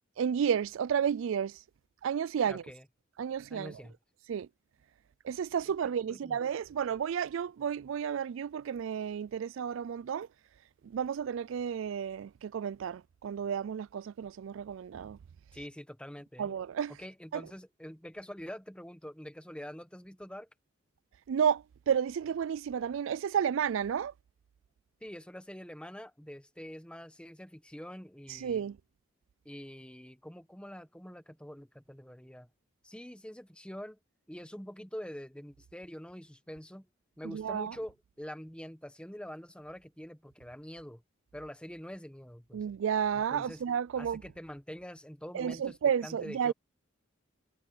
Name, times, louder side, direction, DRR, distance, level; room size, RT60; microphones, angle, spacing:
voice 1, 0.2-1.6 2.0-2.6 3.2-3.7 4.3-4.5 5.2-10.3 10.8-15.2 16.4-16.9 17.3-17.4 21.3-24.1 28.4-28.8 37.2-37.7 42.5-44.2 45.3-46.5, right 8 dB, 70° right, 0.3 m, -32 dB
voice 2, 2.4-2.8 3.5-4.0 5.6-5.7 6.1-6.4 15.5-16.6 17.0-20.5 25.0-28.6 29.4-32.5 32.8-34.0 34.3-36.9 37.2-41.0 41.3-42.6 43.1-43.6 44.0-46.5, equal, 5° left, 1.2 m, -45 dB
head